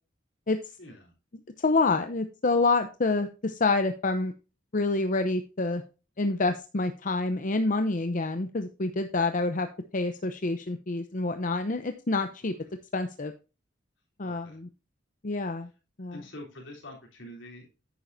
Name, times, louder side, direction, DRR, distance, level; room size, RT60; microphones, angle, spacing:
voice 1, 0.8-1.1 14.2-14.6 16.1-17.7, left 1 dB, 70° left, -1 dB, 3.7 m, -45 dB
voice 2, 1.6-4.3 4.7-5.8 6.2-9.7 9.9-12.5 12.9-13.3 14.2-14.7 15.2-15.7 16.0-16.2, left 3 dB, 45° left, 7 dB, 0.7 m, -27 dB
10.5 x 9.4 x 2.7 m, 0.31 s
head